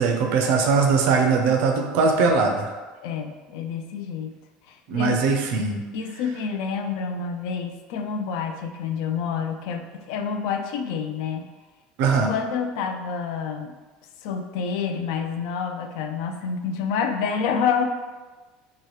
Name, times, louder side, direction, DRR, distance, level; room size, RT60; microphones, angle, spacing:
voice 1, 0.0-2.7 4.9-5.8 12.0-12.3, right 4 dB, 65° right, 3 dB, 0.5 m, -21 dB
voice 2, 3.0-4.4 4.7-5.2 5.9-11.5 12.2-13.8 14.2-17.8, left 6 dB, 75° left, 6 dB, 0.3 m, -28 dB
2.9 x 2.3 x 3.1 m, 1.3 s
cardioid pair, 140°, 3 cm